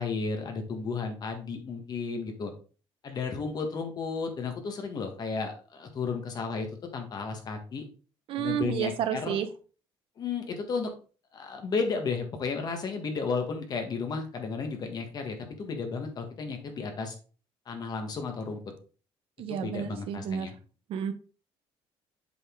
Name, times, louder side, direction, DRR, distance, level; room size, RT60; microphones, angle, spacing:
voice 1, 0.0-2.5 3.0-6.7 6.9-7.8 8.4-9.4 10.2-10.9 11.3-17.1 17.7-18.6 19.5-20.5, left 4 dB, 40° left, 5 dB, 1.6 m, -33 dB
voice 2, 8.3-9.5 19.4-20.5 20.9-21.1, right 9 dB, 60° right, 9 dB, 0.8 m, -31 dB
7.7 x 4.3 x 3.7 m, 0.38 s
cardioid pair, 135°, 10 cm